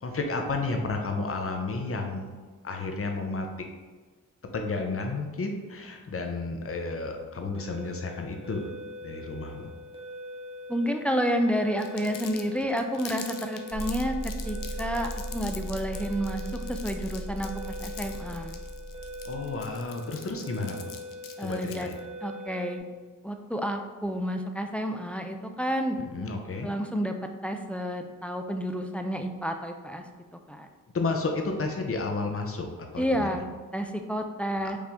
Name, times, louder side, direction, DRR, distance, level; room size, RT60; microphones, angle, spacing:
voice 1, 0.0-3.5 4.5-8.6 9.0-9.7 19.3-20.9 21.4-21.9 26.1-26.7 30.9-32.7 32.9-33.4, left 3 dB, 40° left, 3 dB, 0.8 m, -32 dB
sound 1, 7.5-22.8, left 1 dB, 15° right, 1.1 m, -43 dB
voice 2, 10.7-14.2 14.4-18.6 21.4-22.8 23.2-26.0 26.6-27.1 27.4-30.0 30.5-30.7 33.0-33.5 33.7-34.8, equal, 5° left, 5 dB, 0.4 m, -30 dB
Crumpling crinkling, 11.8-22.0, left 8 dB, 75° left, 0.5 m, -44 dB
sound 2, 13.7-19.8, right 1 dB, 35° right, 0.8 m, -37 dB
4.9 x 2.7 x 3.5 m, 1.4 s
cardioid pair, 60°, 33 cm